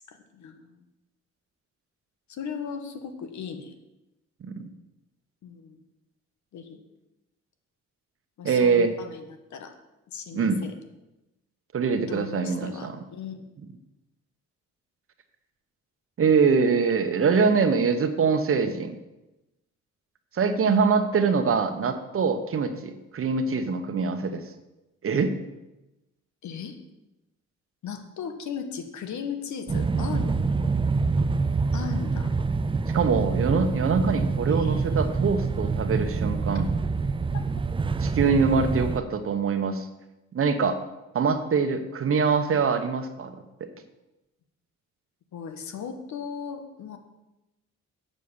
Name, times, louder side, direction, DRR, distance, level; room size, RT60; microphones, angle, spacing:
voice 1, 0.1-0.8 2.3-3.8 5.4-5.8 6.5-6.8 8.4-9.7 10.1-10.7 12.1-13.4 26.4-26.7 27.8-30.4 31.7-32.3 34.5-34.9 45.3-47.0, left 6 dB, 70° left, 7 dB, 1.4 m, -37 dB
voice 2, 8.4-8.9 10.3-10.6 11.7-13.0 16.2-18.9 20.3-24.4 25.0-25.3 32.9-36.7 38.0-39.9 40.3-40.8 41.1-43.3 43.6-43.7, right 5 dB, 45° right, 8 dB, 1.1 m, -24 dB
sound 1, 29.7-39.0, right 4 dB, 15° right, 0.4 m, -26 dB
7.5 x 6.7 x 7.1 m, 0.98 s
cardioid pair, 90°, 30 cm